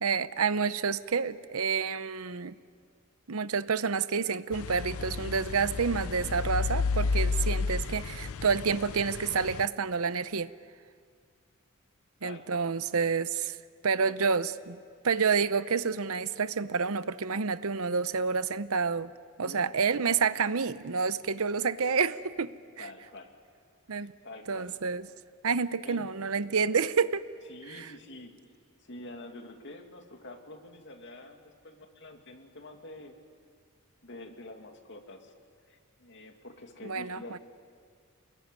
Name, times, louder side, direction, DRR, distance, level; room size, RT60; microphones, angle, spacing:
voice 1, 0.0-2.6 3.3-10.5 12.2-13.6 13.8-14.5 15.0-19.1 19.4-22.8 23.9-24.1 24.5-25.0 25.4-27.2 27.7-27.9 36.8-37.4, right 5 dB, 80° right, 14 dB, 0.8 m, -29 dB
sound 1, 4.5-9.7, left 4 dB, 80° left, 0.7 m, -32 dB
voice 2, 12.2-12.7 14.0-14.3 19.4-19.8 22.8-23.3 23.9-24.7 25.8-26.1 27.5-28.3 28.8-33.1 34.0-35.3 35.7-37.4, left 2 dB, 55° left, 4 dB, 2.5 m, -47 dB
29.0 x 21.0 x 9.7 m, 2.1 s
head